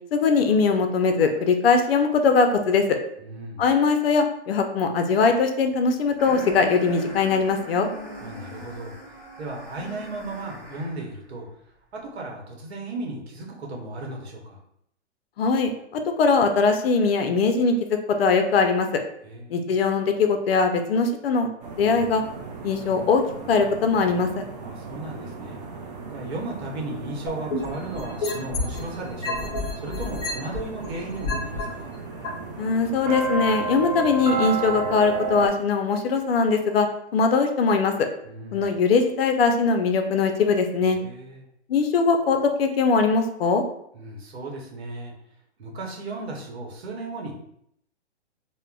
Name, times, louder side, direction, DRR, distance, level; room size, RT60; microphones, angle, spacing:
voice 1, 0.1-3.0 3.6-7.9 15.4-19.0 19.5-21.5 21.8-22.2 22.6-23.2 23.5-24.4 32.6-36.9 37.1-37.9 38.5-41.0 41.7-43.6, left 4 dB, 55° left, 5 dB, 0.5 m, -21 dB
voice 2, 3.2-3.6 8.2-8.9 9.4-11.5 11.9-14.6 19.2-19.6 24.6-25.6 26.1-31.9 38.2-38.7 40.8-41.5 43.9-45.1 45.6-47.3, right 2 dB, 60° right, 0 dB, 0.9 m, -35 dB
sound 1, 6.2-11.1, left 1 dB, ahead, 0.7 m, -39 dB
sound 2, 21.6-35.5, right 4 dB, 40° right, 0.4 m, -33 dB
sound 3, 27.3-28.8 29.2-31.6 32.2-32.3, left 3 dB, 35° left, 0.8 m, -29 dB
3.6 x 2.1 x 2.3 m, 0.72 s
hypercardioid pair, 140°, 35 cm